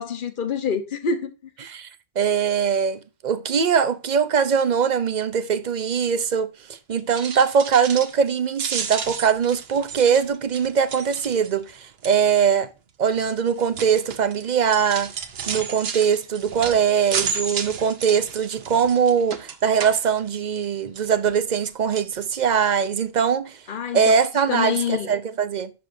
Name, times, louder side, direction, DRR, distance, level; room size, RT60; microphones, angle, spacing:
voice 1, 0.0-1.3 23.7-24.2 24.5-25.1, left 6 dB, 55° left, 1.1 m, -26 dB
voice 2, 2.2-6.5 6.9-12.7 13.0-15.1 15.5-23.6 23.9-25.7, right 7 dB, 50° right, 0.7 m, -21 dB
sound 1, 7.0-8.3 8.5-11.7 12.0-12.4 13.1-20.6 21.0-21.7 21.9-22.1 22.6-22.7 23.0-23.1, right 6 dB, 70° right, 1.1 m, -32 dB
10.5 x 6.8 x 2.6 m
omnidirectional pair, 1.1 m